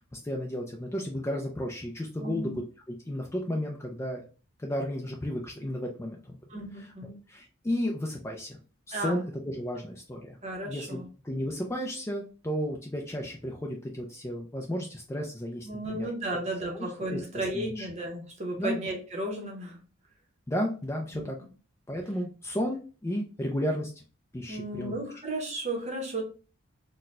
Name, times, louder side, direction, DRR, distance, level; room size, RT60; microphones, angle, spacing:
voice 1, 0.0-4.2 4.6-6.4 6.8-6.9 7.3-8.6 8.9-10.4 10.6-16.1 16.7-17.9 18.6-18.8 20.5-21.4 21.9-24.0 24.3-25.0, equal, 10° left, 0.4 m, -33 dB
voice 2, 2.2-2.5 6.5-7.2 8.9-9.2 10.4-11.1 15.6-19.8 21.1-21.2 24.5-26.2, right 1 dB, 30° right, 0.8 m, -34 dB
4.1 x 2.1 x 2.4 m
head